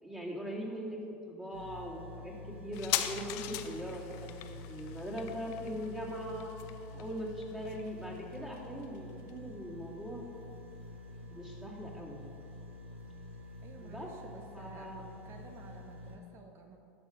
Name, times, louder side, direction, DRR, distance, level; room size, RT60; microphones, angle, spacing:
voice 1, 0.0-1.0 1.3-6.5 6.9-10.3 11.3-12.2 13.8-14.1 14.5-15.0, equal, 15° right, -5 dB, 2.1 m, -41 dB
sound 1, 1.5-16.2, left 2 dB, 85° right, 1.2 m, -48 dB
sound 2, 2.7-9.8 10.1-10.2, left 13 dB, 60° left, 0.6 m, -41 dB
voice 2, 13.6-16.8, right 4 dB, 45° right, 4 dB, 0.9 m, -52 dB
12.5 x 5.7 x 4.9 m, 2.7 s
hypercardioid pair, 85°, 6 cm